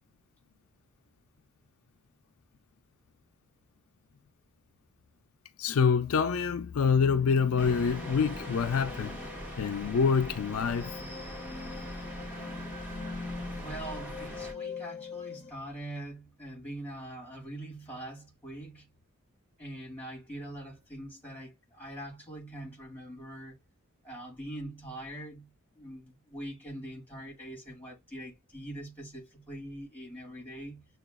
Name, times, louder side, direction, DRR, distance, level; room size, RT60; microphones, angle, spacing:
voice 1, 5.6-9.2 9.6-10.9, left 6 dB, 80° left, 0.4 m, -26 dB
sound 1, 6.8-15.5, left 4 dB, 35° left, 0.6 m, -42 dB
sound 2, 7.6-14.5, right 1 dB, 10° right, 1.2 m, -42 dB
voice 2, 13.6-18.9 19.6-23.6 24.0-30.9, right 1 dB, 5° left, 2.0 m, -43 dB
6.8 x 2.3 x 2.3 m
head